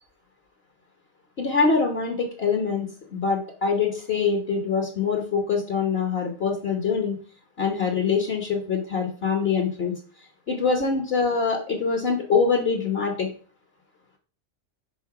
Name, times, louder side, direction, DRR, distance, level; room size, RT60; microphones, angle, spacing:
voice 1, 1.4-7.2 7.6-9.9 10.5-13.3, left 5 dB, 50° left, 2 dB, 1.4 m, -24 dB
5.2 x 4.2 x 5.8 m, 0.40 s
omnidirectional pair, 1.4 m